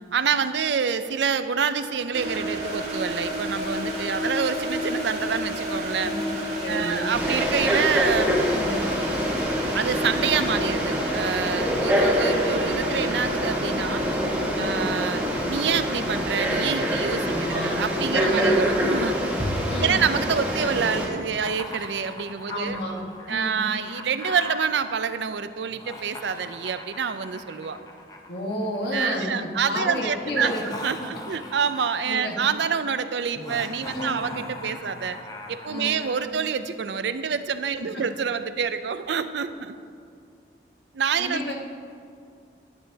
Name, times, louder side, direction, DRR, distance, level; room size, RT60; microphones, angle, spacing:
voice 1, 0.1-6.1 6.7-8.4 9.7-14.1 14.6-19.3 19.8-22.8 23.3-27.8 28.9-35.2 35.5-39.8 40.9-41.4, right 6 dB, 80° right, 11 dB, 0.4 m, -27 dB
sound 1, 2.1-19.0, equal, 40° right, 1.6 m, -32 dB
voice 2, 6.0-6.3 6.6-7.1 8.5-8.7 14.6-14.7 17.2-17.8 18.1-18.6 19.7-20.0 22.5-23.0 23.3-23.6 28.3-30.6 31.0-31.1 32.1-32.3 33.9-34.2 35.7-36.0 37.8-37.9 41.2-41.5, left 1 dB, 75° left, -1 dB, 1.4 m, -31 dB
Frog, 7.1-21.1, equal, 10° right, 1.2 m, -25 dB
Laughter, 21.3-24.7 25.7-29.0 30.2-32.2 33.3-36.3, left 2 dB, 20° left, 0.6 m, -40 dB
11.0 x 10.5 x 2.8 m, 2.3 s
head